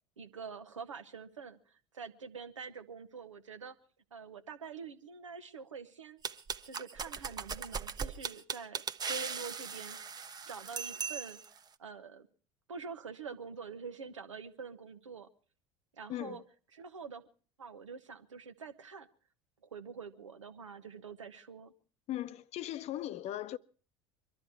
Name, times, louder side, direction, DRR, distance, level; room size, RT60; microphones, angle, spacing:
voice 1, 0.2-3.8 4.1-6.2 6.6-10.0 10.5-12.3 12.7-15.3 15.9-16.4 16.7-17.2 17.6-19.1 19.7-21.7, right 5 dB, 85° right, 1.1 m, -46 dB
sound 1, 6.2-11.6, right 6 dB, 25° right, 0.9 m, -39 dB
voice 2, 16.1-16.4 22.1-23.6, left 13 dB, 45° left, 0.7 m, -38 dB
23.5 x 13.0 x 4.6 m
figure-of-eight pair, 70°, 16 cm